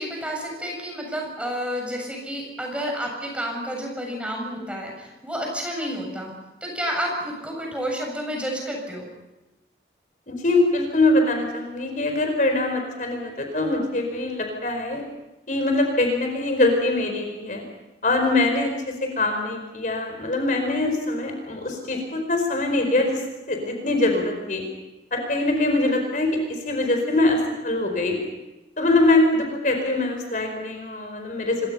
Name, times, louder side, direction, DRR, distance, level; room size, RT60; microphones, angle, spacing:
voice 1, 0.0-6.3 6.6-9.0, equal, 5° right, 0 dB, 7.4 m, -30 dB
voice 2, 10.3-15.1 15.5-17.6 18.0-24.6 25.1-28.2 28.8-31.6, left 2 dB, 45° left, 4 dB, 4.8 m, -23 dB
27.0 x 24.5 x 5.7 m, 1.0 s
head